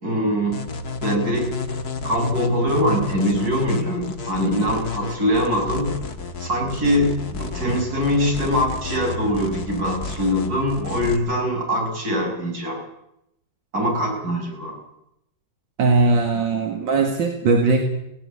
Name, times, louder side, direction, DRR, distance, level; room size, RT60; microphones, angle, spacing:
voice 1, 0.0-0.6 1.0-1.8 2.0-6.0 6.4-12.8 13.7-14.8, equal, 55° right, 0 dB, 7.0 m, -23 dB
sound 1, 0.5-11.2, left 4 dB, 55° left, 2.2 m, -32 dB
voice 2, 15.8-17.8, right 3 dB, 85° right, 2 dB, 2.7 m, -19 dB
18.5 x 17.0 x 8.5 m, 0.83 s
omnidirectional pair, 2.0 m